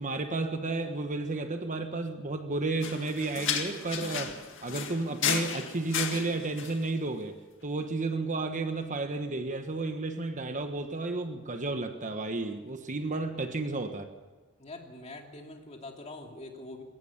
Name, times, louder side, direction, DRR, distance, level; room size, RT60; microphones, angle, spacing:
voice 1, 0.0-4.4 4.6-14.1, right 3 dB, 35° right, 7 dB, 1.3 m, -32 dB
sound 1, 2.8-6.8, left 8 dB, 60° left, 2.0 m, -33 dB
voice 2, 14.6-16.8, left 2 dB, 30° left, 2 dB, 2.8 m, -44 dB
22.0 x 17.5 x 7.3 m, 1.3 s
head